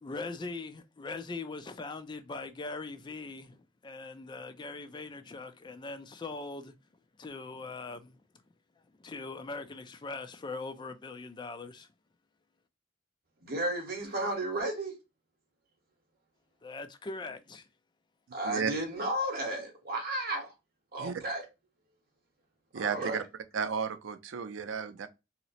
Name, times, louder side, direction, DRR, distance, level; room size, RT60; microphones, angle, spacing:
voice 1, 0.0-6.7 7.2-8.1 9.0-11.9 16.6-17.7, left 3 dB, 25° left, 0.3 m, -41 dB
voice 2, 13.4-14.9 18.3-20.5 20.9-21.4 22.7-23.2, right 1 dB, 50° right, 1.0 m, -33 dB
voice 3, 22.7-23.2 23.5-25.1, right 6 dB, 80° right, 0.4 m, -33 dB
2.8 x 2.0 x 4.0 m
head